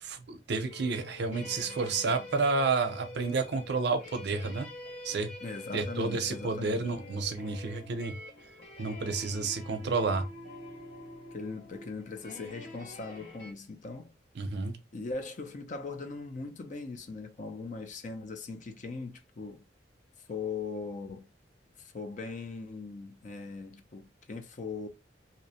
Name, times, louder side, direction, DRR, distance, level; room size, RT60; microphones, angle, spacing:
voice 1, 0.0-4.7 5.0-5.3 5.7-8.1 8.8-10.2 14.4-14.8, right 4 dB, 65° right, 0.5 m, -30 dB
sound 1, 0.6-13.5, left 1 dB, 75° left, 1.0 m, -46 dB
voice 2, 5.4-6.9 11.3-14.0 14.9-19.6 20.3-21.3 21.8-24.9, left 4 dB, 45° left, 0.5 m, -40 dB
2.7 x 2.0 x 2.7 m
head